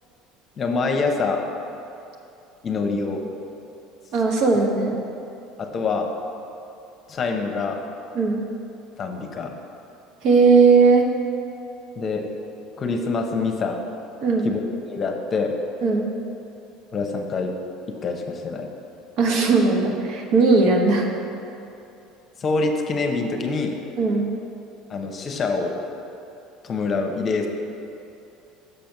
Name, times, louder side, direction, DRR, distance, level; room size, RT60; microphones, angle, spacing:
voice 1, 0.6-1.4 2.6-3.2 5.6-6.1 7.1-7.8 9.0-9.6 12.0-12.2 12.8-13.8 14.4-14.6 14.9-15.5 16.9-17.5 18.0-18.7 22.4-23.8 24.9-25.8 26.6-27.5, left 4 dB, 35° left, 3 dB, 0.9 m, -25 dB
voice 2, 4.1-5.0 8.1-8.4 10.2-11.1 14.2-14.5 15.8-16.1 19.2-21.1 24.0-24.3, right 4 dB, 60° right, 1 dB, 1.1 m, -18 dB
6.8 x 5.1 x 5.9 m, 2.8 s
supercardioid pair, 100°, 0 cm